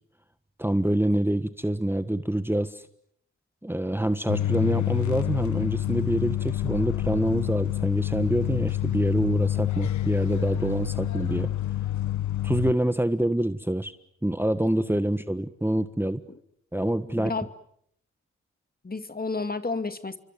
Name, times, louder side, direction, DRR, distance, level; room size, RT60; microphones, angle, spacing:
voice 1, 0.6-2.9 3.6-11.5 12.4-13.9 14.2-16.2 16.7-17.3, right 1 dB, 5° right, 11 dB, 1.5 m, -26 dB
sound 1, 4.3-12.7, left 13 dB, 75° left, 1.2 m, -28 dB
voice 2, 17.1-17.5 18.8-20.2, left 3 dB, 30° left, 10 dB, 2.5 m, -31 dB
29.5 x 24.5 x 7.9 m, 0.70 s
supercardioid pair, 45°, 29 cm